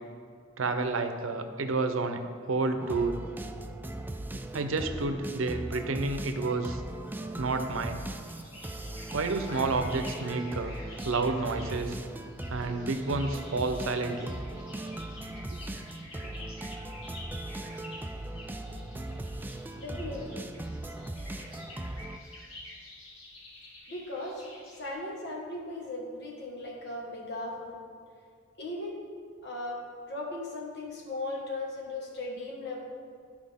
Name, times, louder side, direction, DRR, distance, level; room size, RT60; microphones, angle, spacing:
voice 1, 0.6-3.2 4.5-6.8 7.4-8.1 9.1-10.8 11.0-12.0 12.5-14.3, right 3 dB, 80° right, 7 dB, 0.7 m, -30 dB
sound 1, 2.8-22.2, right 1 dB, 10° right, 0.3 m, -39 dB
sound 2, 8.3-24.9, left 1 dB, 85° left, 2.2 m, -49 dB
voice 2, 19.8-20.5 23.9-24.4 24.8-27.8 28.6-29.0 29.4-29.8 30.1-32.8, left 2 dB, 60° left, -1 dB, 1.6 m, -37 dB
12.5 x 4.8 x 3.5 m, 2.1 s
head